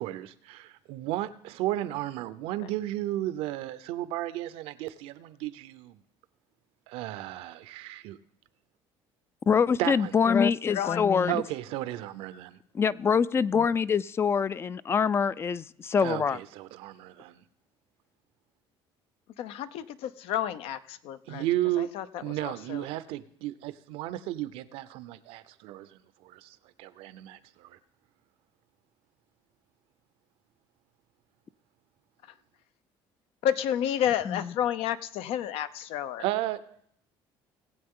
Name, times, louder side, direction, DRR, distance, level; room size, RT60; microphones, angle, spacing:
voice 1, 0.0-6.0 6.9-8.2 9.8-10.1 11.3-12.6 16.0-17.4 21.3-21.9 22.2-27.8 36.2-36.7, right 15 dB, 85° right, 0.7 m, -34 dB
voice 2, 9.5-11.4 12.7-16.4 34.3-34.5, left 6 dB, 25° left, 0.3 m, -25 dB
voice 3, 10.7-11.2 19.4-21.4 21.8-22.9 33.4-36.2, left 10 dB, 75° left, 0.6 m, -31 dB
19.0 x 7.8 x 3.8 m
cardioid pair, 125°, 10 cm